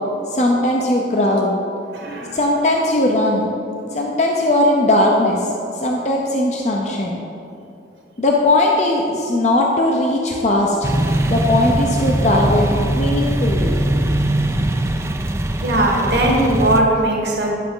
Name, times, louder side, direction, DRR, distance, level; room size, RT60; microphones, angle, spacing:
voice 1, 0.3-1.6 2.3-3.5 3.9-5.5 5.8-7.2 8.2-10.8 11.3-13.8, left 1 dB, 40° left, 0 dB, 0.6 m, -18 dB
voice 2, 1.9-2.4 15.6-17.5, right 1 dB, 70° right, -1 dB, 1.7 m, -19 dB
sound 1, 10.8-16.8, right 1 dB, 15° right, 0.3 m, -20 dB
11.0 x 5.9 x 3.8 m, 2.7 s
head